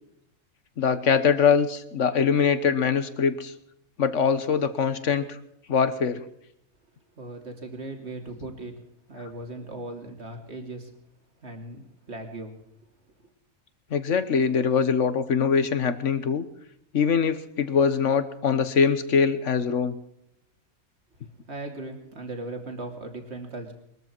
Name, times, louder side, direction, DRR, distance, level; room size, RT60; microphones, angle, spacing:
voice 1, 0.8-3.5 4.0-5.4 5.7-6.2 13.9-16.4 16.9-19.9, left 6 dB, 60° left, 12 dB, 1.5 m, -23 dB
voice 2, 7.2-8.7 9.1-10.9 11.4-12.5 21.5-23.7, right 2 dB, 50° right, 3 dB, 3.2 m, -38 dB
22.0 x 13.5 x 4.6 m, 0.75 s
omnidirectional pair, 1.4 m